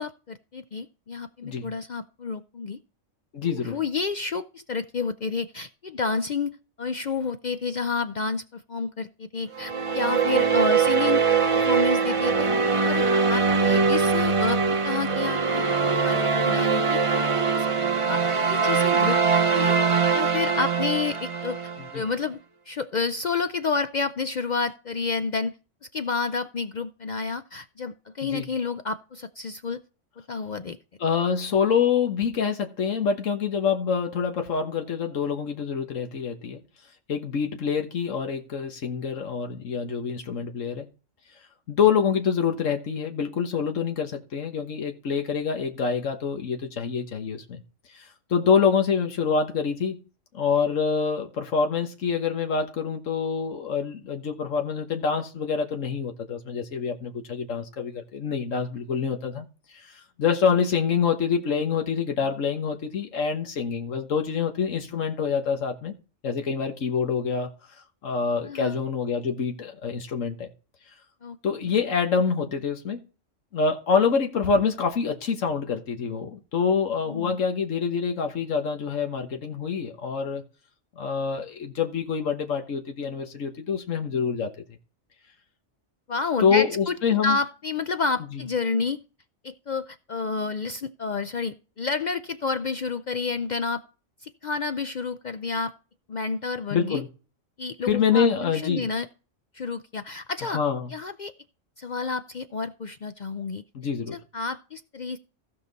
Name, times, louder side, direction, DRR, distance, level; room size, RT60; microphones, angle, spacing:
voice 1, 0.0-2.8 3.5-6.5 6.8-11.2 11.5-12.5 12.8-15.6 16.0-17.0 17.5-17.7 18.1-19.8 20.1-21.6 21.9-22.4 22.7-25.6 25.9-29.8 30.3-30.8 68.4-68.8 71.2-71.4 71.6-71.7 77.1-77.3 86.1-87.0 87.2-89.0 89.4-93.8 94.2-95.7 96.1-97.0 97.6-99.1 99.5-100.6 100.9-101.3 101.8-103.6 104.1-105.2, left 4 dB, 55° left, 0.5 m, -30 dB
voice 2, 3.3-3.8 21.8-22.0 28.2-28.5 31.0-36.6 37.1-40.9 41.7-47.6 47.9-50.0 50.3-59.4 59.7-65.9 66.2-67.5 68.0-70.5 71.4-73.0 73.5-80.4 81.0-84.5 86.4-87.4 88.3-88.5 96.7-97.1 97.9-98.9 100.4-100.9 103.7-104.2, left 6 dB, 85° left, 1.6 m, -26 dB
sound 1, 9.6-21.9, right 5 dB, 30° right, 0.8 m, -22 dB
16.0 x 5.7 x 4.0 m
omnidirectional pair, 1.3 m